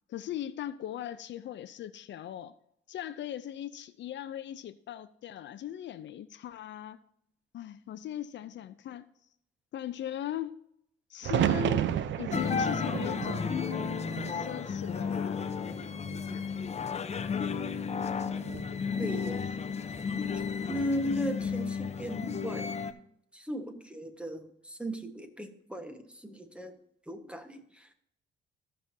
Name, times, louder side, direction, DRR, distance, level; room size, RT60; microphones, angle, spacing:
voice 1, 0.1-2.5 2.9-7.0 7.5-9.1 9.7-10.5 11.1-11.9 12.2-13.6 14.3-15.5, left 11 dB, 65° left, 13 dB, 0.6 m, -39 dB
sound 1, 11.2-15.3 15.6-16.4 18.3-18.8, right 10 dB, 70° right, 0.7 m, -32 dB
sound 2, 12.3-22.9, left 6 dB, 35° left, 0.8 m, -33 dB
voice 2, 19.0-19.5 20.7-22.7 23.3-26.7 27.1-27.9, equal, 5° right, 6 dB, 1.4 m, -36 dB
15.5 x 6.2 x 2.8 m, 0.74 s
cardioid pair, 90°, 20 cm